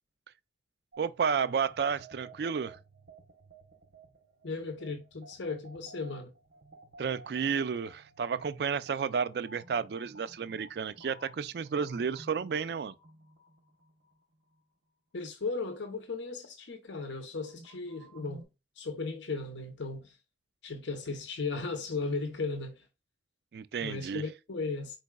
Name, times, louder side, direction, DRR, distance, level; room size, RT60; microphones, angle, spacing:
sound 1, 0.9-14.6 17.4-18.4, right 2 dB, 90° right, 1.1 m, -54 dB
voice 1, 1.0-2.8 7.0-12.9 23.5-24.2, right 6 dB, 60° right, 0.3 m, -32 dB
voice 2, 4.4-6.3 15.1-18.5 18.8-20.2 20.6-22.9 23.8-25.0, left 3 dB, 80° left, 0.7 m, -36 dB
4.6 x 4.0 x 2.2 m
head